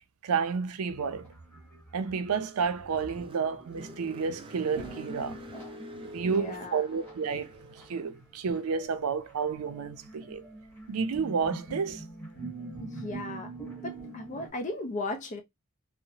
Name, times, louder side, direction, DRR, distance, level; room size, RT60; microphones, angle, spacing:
voice 1, 0.2-1.3 1.9-5.4 6.1-10.4 10.9-12.0, right 5 dB, 85° right, 0.5 m, -31 dB
sound 1, 0.9-3.7 4.8-14.5, right 2 dB, 10° left, 0.9 m, -44 dB
Car, 2.6-8.0, right 1 dB, 25° right, 0.4 m, -47 dB
voice 2, 6.2-6.8 12.8-13.5 13.8-15.4, left 2 dB, 35° left, 0.4 m, -36 dB
2.8 x 2.1 x 2.6 m
head